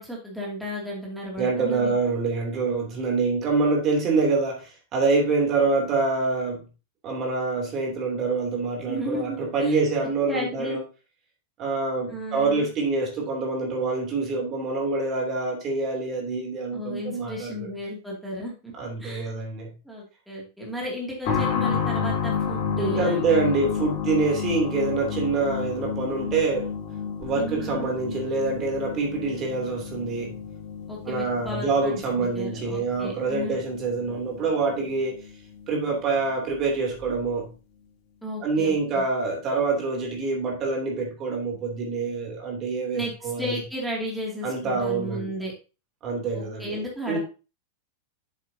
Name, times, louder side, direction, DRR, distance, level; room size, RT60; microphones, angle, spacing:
voice 1, 0.0-1.9 8.9-9.8 10.3-10.8 12.1-12.7 16.7-18.7 19.0-19.3 19.8-23.5 27.3-27.9 30.9-33.6 38.2-38.7 42.9-45.5 46.3-47.2, equal, ahead, -4 dB, 2.5 m, -34 dB
voice 2, 1.4-6.6 7.0-10.8 11.6-17.6 18.8-19.7 22.8-26.7 27.2-30.4 31.0-35.2 35.7-37.5 38.4-43.6 44.4-45.3 46.0-46.8 47.1-47.2, right 3 dB, 35° right, 1 dB, 3.0 m, -26 dB
sound 1, 21.2-35.7 35.9-36.0 37.0-37.1, left 6 dB, 50° left, 3.0 m, -31 dB
8.1 x 7.4 x 2.8 m, 0.32 s
hypercardioid pair, 120°, 0 cm